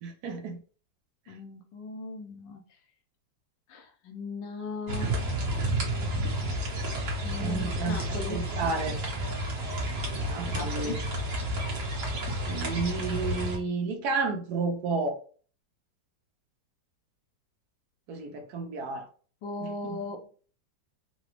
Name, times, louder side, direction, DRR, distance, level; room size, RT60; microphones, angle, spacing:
voice 1, 0.0-0.6 7.4-9.0 10.1-11.0 12.5-15.2 18.1-19.1 19.6-20.0, right 4 dB, 70° right, 1.1 m, -32 dB
voice 2, 1.3-2.6 3.7-5.4 7.2-8.4 10.5-11.1 19.4-20.3, left 3 dB, 80° left, 1.4 m, -38 dB
sound 1, 4.9-13.6, right 1 dB, 50° right, 1.4 m, -31 dB
3.9 x 2.2 x 3.1 m
omnidirectional pair, 1.9 m